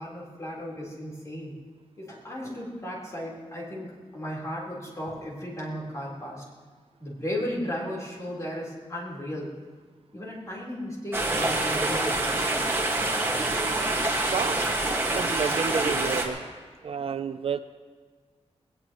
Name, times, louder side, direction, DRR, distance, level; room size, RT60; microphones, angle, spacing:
voice 1, 0.0-1.5 2.0-6.4 7.0-9.5 10.1-12.7, equal, 30° left, -4 dB, 3.9 m, -35 dB
sound 1, 11.1-16.3, right 2 dB, 20° right, 1.7 m, -26 dB
voice 2, 15.1-16.4 16.8-17.6, right 6 dB, 55° right, 10 dB, 0.5 m, -30 dB
20.0 x 18.5 x 3.0 m, 1.5 s
wide cardioid pair, 165°, 11 cm